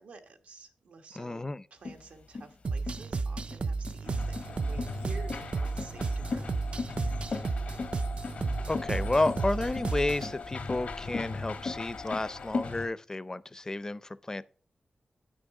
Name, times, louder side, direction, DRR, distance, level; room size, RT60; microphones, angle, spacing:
voice 1, 0.0-1.4 1.7-6.5, right 4 dB, 90° right, 1.2 m, -50 dB
voice 2, 1.2-1.6 8.7-14.4, left 2 dB, 25° left, 0.4 m, -31 dB
sound 1, 1.8-12.7, left 3 dB, 65° left, 0.8 m, -38 dB
sound 2, 2.6-10.3, right 4 dB, 55° right, 0.4 m, -33 dB
sound 3, 4.0-12.9, left 3 dB, 90° left, 1.3 m, -40 dB
9.1 x 6.3 x 4.7 m
wide cardioid pair, 70°, 2 cm